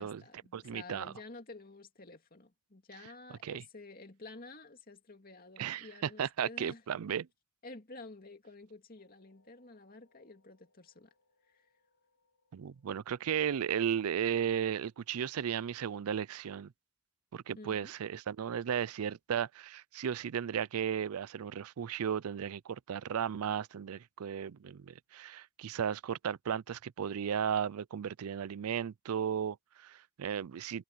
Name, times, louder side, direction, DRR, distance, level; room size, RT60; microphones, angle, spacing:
voice 1, 0.0-6.8 7.6-11.1 11.5-11.7 17.5-17.9, left 2 dB, 40° left, 2.6 m, -51 dB
voice 2, 0.5-1.1 3.4-3.6 5.6-7.3 12.5-16.7 17.3-30.8, right 8 dB, 85° right, 0.4 m, -35 dB
sound 1, 9.0-15.5, left 3 dB, 75° left, 5.6 m, -76 dB
head